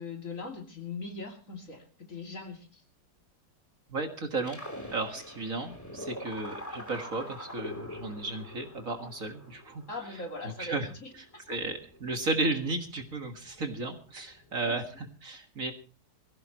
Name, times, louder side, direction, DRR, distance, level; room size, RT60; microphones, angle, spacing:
voice 1, 0.0-2.8 9.9-11.4 14.7-14.8, left 3 dB, 45° left, 3 dB, 3.0 m, -40 dB
voice 2, 3.9-4.6 4.9-9.8 10.4-10.9 11.5-15.7, right 2 dB, 45° right, 5 dB, 2.0 m, -34 dB
sound 1, 4.4-15.1, equal, 10° left, 3.4 m, -45 dB
23.0 x 16.0 x 3.0 m, 0.36 s
omnidirectional pair, 2.0 m